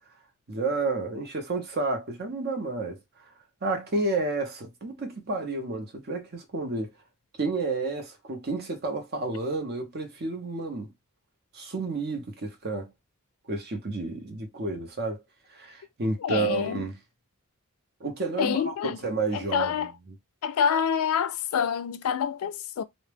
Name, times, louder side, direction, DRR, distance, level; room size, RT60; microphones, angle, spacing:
voice 1, 0.5-3.0 3.6-6.9 7.4-10.9 11.5-12.9 13.5-15.2 15.5-17.0 18.0-19.9, right 3 dB, 50° right, 0.7 m, -30 dB
voice 2, 16.2-16.9 18.4-19.0 19.3-19.9 20.4-22.8, left 7 dB, 70° left, 0.4 m, -27 dB
2.2 x 2.1 x 3.3 m
head